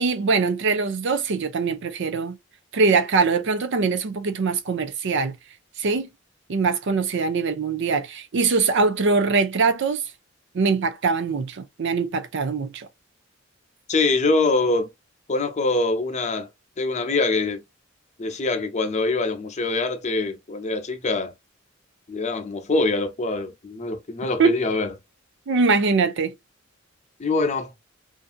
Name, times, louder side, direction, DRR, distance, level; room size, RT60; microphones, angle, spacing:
voice 1, 0.0-2.4 2.7-5.3 5.8-6.1 6.5-10.0 10.5-12.9 24.4-24.6 25.5-26.3, right 4 dB, 60° right, 0.5 m, -22 dB
voice 2, 13.9-14.9 15.3-16.5 16.8-17.6 18.2-21.3 22.1-24.9 27.2-27.7, left 3 dB, 35° left, 0.6 m, -24 dB
2.6 x 2.6 x 2.4 m
head